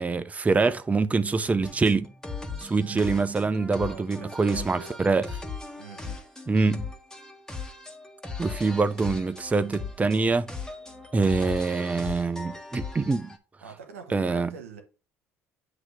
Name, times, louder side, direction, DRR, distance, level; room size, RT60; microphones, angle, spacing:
voice 1, 0.0-2.1 2.6-5.3 6.5-6.9 8.4-10.5 11.1-13.4 14.1-14.5, right 4 dB, 20° right, 0.6 m, -25 dB
sound 1, 1.6-13.4, left 4 dB, 10° left, 1.5 m, -39 dB
voice 2, 3.8-5.4 5.8-6.2 13.6-14.8, right 5 dB, 90° right, 1.2 m, -44 dB
8.0 x 2.9 x 5.7 m
hypercardioid pair, 65°, 7 cm